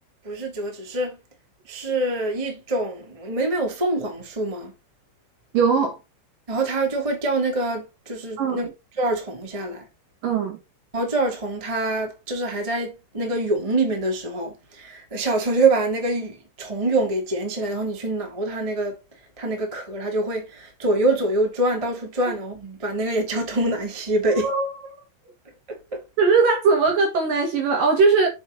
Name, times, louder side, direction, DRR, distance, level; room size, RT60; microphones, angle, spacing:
voice 1, 0.2-1.2 1.7-4.7 6.5-8.7 9.0-9.9 10.9-19.0 19.4-24.5 25.7-26.0, right 2 dB, 20° right, 0.8 m, -25 dB
voice 2, 5.5-6.0 8.4-8.6 10.2-10.6 24.4-24.7 26.2-28.3, right 4 dB, 55° right, 2.7 m, -19 dB
7.5 x 7.0 x 4.0 m
omnidirectional pair, 6.0 m